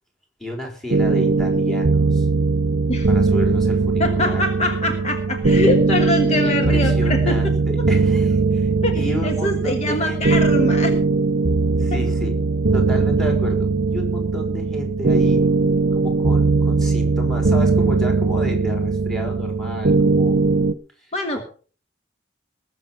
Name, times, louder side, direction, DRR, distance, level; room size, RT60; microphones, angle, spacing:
voice 1, 0.4-2.3 3.1-4.4 6.4-10.4 11.8-12.4 12.7-15.4 15.9-20.4 21.0-21.4, left 1 dB, ahead, 2 dB, 4.2 m, -31 dB
sound 1, 0.9-20.7, right 3 dB, 65° right, 0.8 m, -19 dB
voice 2, 4.0-7.4 8.8-10.9 11.9-12.0 21.1-21.4, left 1 dB, 35° left, 5 dB, 1.4 m, -24 dB
19.5 x 7.3 x 5.8 m, 0.41 s
head